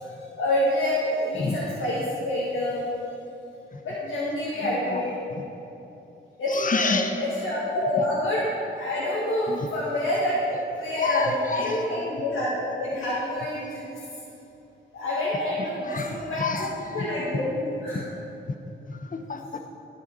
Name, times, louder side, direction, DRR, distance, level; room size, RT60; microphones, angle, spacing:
voice 1, 0.4-2.9 3.8-5.1 6.4-8.4 8.8-10.4 10.7-13.9 14.9-16.7 16.9-17.6 17.8-18.0, left 1 dB, 80° left, -9 dB, 1.9 m, -27 dB
voice 2, 4.6-5.0 5.4-5.5 6.5-7.2 7.8-8.0 9.5-9.7 11.0-12.2 15.8-17.1 17.9-18.0 18.9-19.6, left 3 dB, 40° left, 6 dB, 0.9 m, -30 dB
12.0 x 5.6 x 5.4 m, 2.9 s
cardioid pair, 45°, 21 cm